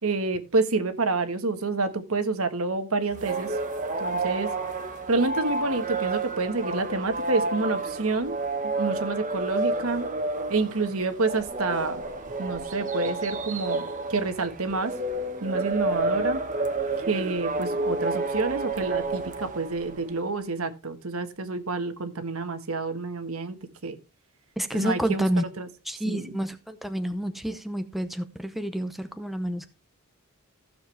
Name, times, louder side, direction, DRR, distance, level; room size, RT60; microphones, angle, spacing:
voice 1, 0.0-3.6 4.0-4.5 5.1-8.3 8.6-10.1 10.5-12.0 12.4-15.0 15.4-16.4 17.1-23.6 23.8-24.0 24.7-25.3 25.6-25.7 26.0-26.4, right 3 dB, 70° right, 9 dB, 1.4 m, -28 dB
sound 1, 3.1-20.1, right 2 dB, 35° right, 1.3 m, -30 dB
voice 2, 24.6-25.4 25.9-29.7, right 1 dB, ahead, 8 dB, 0.7 m, -29 dB
15.0 x 7.1 x 3.3 m, 0.28 s
head